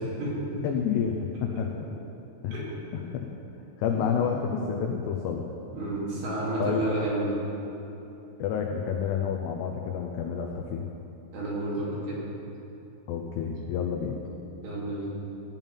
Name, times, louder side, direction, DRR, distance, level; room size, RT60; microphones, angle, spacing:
voice 1, 0.0-0.6 2.5-2.7 3.9-4.1 5.7-7.3 11.3-12.2 14.6-15.1, right 1 dB, 65° right, -7 dB, 4.9 m, -30 dB
voice 2, 0.6-1.9 2.4-2.6 2.9-3.3 3.8-5.4 6.6-6.9 8.4-10.9 13.1-14.2, left 7 dB, 90° left, 1 dB, 2.3 m, -29 dB
15.5 x 5.5 x 8.9 m, 2.9 s
omnidirectional pair, 5.9 m